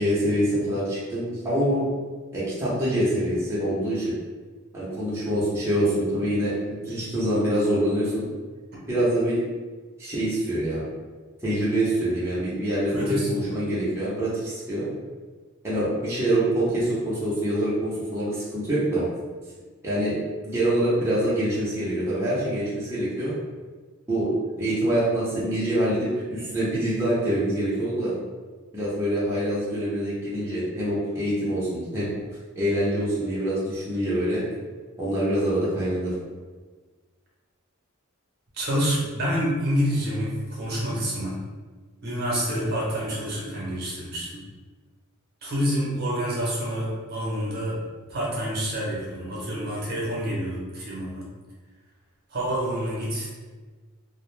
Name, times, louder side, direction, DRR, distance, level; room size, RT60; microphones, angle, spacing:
voice 1, 0.0-1.9 2.3-4.1 4.7-8.3 8.9-9.4 10.0-10.9 11.4-15.0 15.6-19.1 19.8-23.4 24.1-28.2 28.7-32.1 32.5-34.5 35.0-36.2, right 1 dB, 15° right, -9 dB, 0.6 m, -25 dB
voice 2, 12.9-13.5 38.5-41.4 42.0-44.4 45.4-47.8 48.1-51.2 52.3-53.3, equal, 50° right, -5 dB, 0.7 m, -28 dB
2.4 x 2.0 x 3.1 m, 1.4 s
head